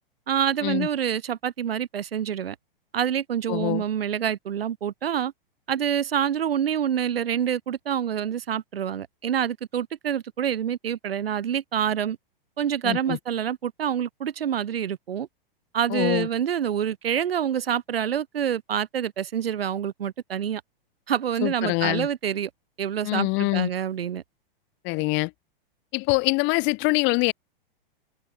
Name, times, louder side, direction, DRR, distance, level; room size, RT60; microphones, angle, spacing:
voice 1, 0.3-2.6 2.9-5.3 5.7-12.2 12.6-15.3 15.7-20.6 21.1-22.5 22.8-24.2, right 9 dB, 80° right, 6.1 m, -27 dB
voice 2, 3.5-3.8 12.8-13.2 15.9-16.3 21.4-22.1 23.0-23.7 24.8-25.3 25.9-27.3, left 28 dB, 40° left, 1.6 m, -24 dB
hypercardioid pair, 125°, 29 cm